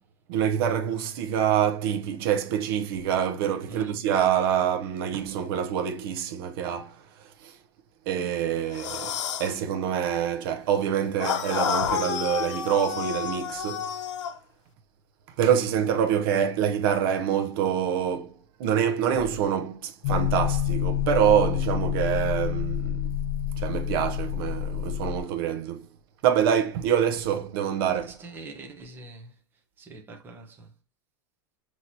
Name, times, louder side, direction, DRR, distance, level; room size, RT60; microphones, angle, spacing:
voice 1, 0.3-7.6 8.1-14.0 15.4-23.1 23.6-25.9 26.2-28.2, right 9 dB, 50° right, 0.7 m, -26 dB
voice 2, 3.7-4.0 28.1-29.4 29.8-30.7, right 3 dB, 15° right, 0.7 m, -43 dB
sound 1, 8.7-9.5 11.2-14.4, left 8 dB, 85° left, 0.7 m, -30 dB
sound 2, 20.0-25.2, left 10 dB, 55° left, 0.5 m, -27 dB
5.7 x 3.0 x 2.7 m
supercardioid pair, 160°, 15 cm